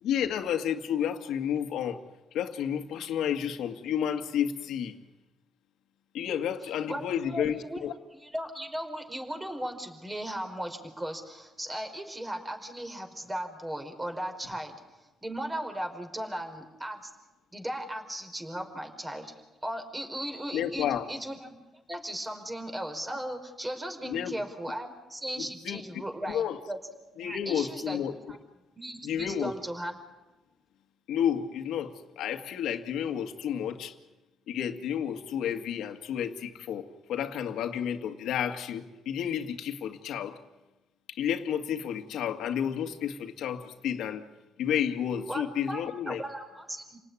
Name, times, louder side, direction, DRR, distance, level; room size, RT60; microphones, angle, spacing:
voice 1, 0.0-2.0 2.3-5.0 6.1-7.9 20.5-21.1 24.0-24.3 25.4-25.8 26.2-26.6 27.2-28.2 29.0-29.5 31.1-33.9 34.5-40.4 41.1-44.3 44.6-46.2, left 9 dB, 80° left, 2.0 m, -31 dB
voice 2, 6.9-7.8 8.1-17.1 17.5-19.3 19.6-21.6 21.9-26.8 27.2-28.4 28.7-30.0 45.3-47.0, right 1 dB, 15° right, 4.8 m, -37 dB
29.5 x 19.0 x 9.9 m
cardioid pair, 90°, 0 cm